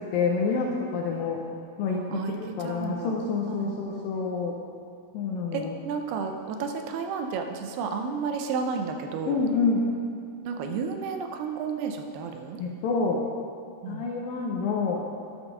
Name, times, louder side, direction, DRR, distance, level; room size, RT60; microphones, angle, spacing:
voice 1, 0.0-1.4 1.8-4.6 5.1-5.7 9.3-9.9 12.6-13.2 13.9-15.1, left 4 dB, 75° left, -1 dB, 2.1 m, -28 dB
voice 2, 2.1-3.2 3.5-4.1 5.5-9.4 10.4-12.6 13.8-14.1, right 5 dB, 80° right, 5 dB, 2.6 m, -32 dB
11.5 x 5.3 x 6.0 m, 2.4 s
omnidirectional pair, 4.7 m